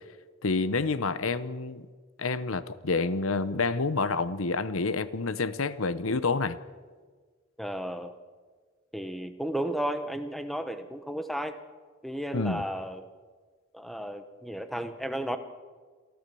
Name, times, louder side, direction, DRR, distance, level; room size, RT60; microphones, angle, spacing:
voice 1, 0.4-1.9 2.2-6.6 12.3-12.7, left 3 dB, 85° left, 0.9 m, -28 dB
voice 2, 7.6-8.1 8.9-11.6 12.0-13.0 13.7-15.4, right 1 dB, ahead, 1.0 m, -33 dB
27.5 x 14.0 x 6.9 m
head